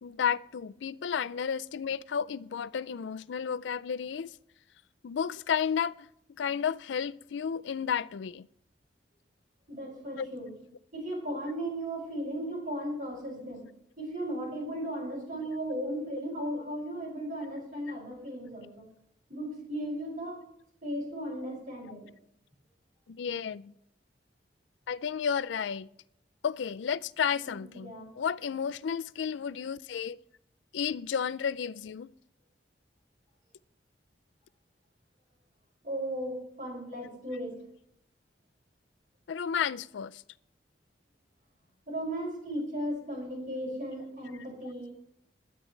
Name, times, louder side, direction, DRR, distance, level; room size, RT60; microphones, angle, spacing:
voice 1, 0.0-4.3 5.0-8.5 10.2-10.3 23.1-23.7 24.9-25.9 26.4-30.2 30.7-32.1 39.3-40.2, left 7 dB, 85° left, 0.4 m, -32 dB
voice 2, 9.7-10.5 10.9-13.6 14.0-18.9 19.3-20.4 20.8-22.1 27.4-28.1 35.8-37.5 41.9-44.9, right 1 dB, 50° right, 6.0 m, -36 dB
21.5 x 10.0 x 3.2 m
head